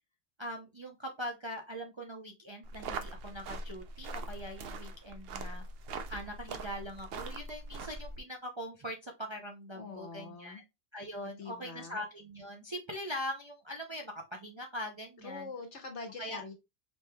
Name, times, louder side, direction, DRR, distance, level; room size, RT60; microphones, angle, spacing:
voice 1, 0.4-5.6 6.1-10.6 10.9-15.5 16.2-16.4, equal, 35° right, 2 dB, 0.5 m, -42 dB
sound 1, 2.6-8.2, right 3 dB, 60° right, 0.8 m, -42 dB
voice 2, 9.7-10.6 11.2-12.0 15.2-16.5, left 3 dB, 70° left, 4 dB, 1.5 m, -44 dB
5.2 x 3.1 x 2.3 m, 0.23 s
omnidirectional pair, 1.2 m